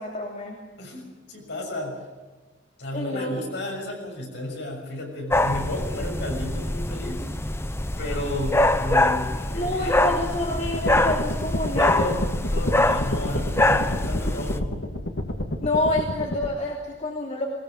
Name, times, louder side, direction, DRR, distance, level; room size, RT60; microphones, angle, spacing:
voice 1, 0.0-0.6 2.9-3.3 9.5-12.1 15.6-17.4, left 1 dB, 40° left, -2 dB, 2.9 m, -28 dB
voice 2, 0.8-2.0 2.8-7.2 8.0-10.0 11.7-12.2 12.5-14.8, left 1 dB, 65° left, 1 dB, 6.7 m, -33 dB
sound 1, 5.3-14.6, left 1 dB, 15° left, 0.8 m, -24 dB
sound 2, 10.7-16.5, left 1 dB, 80° left, 2.3 m, -30 dB
20.5 x 20.0 x 7.7 m, 1.2 s
head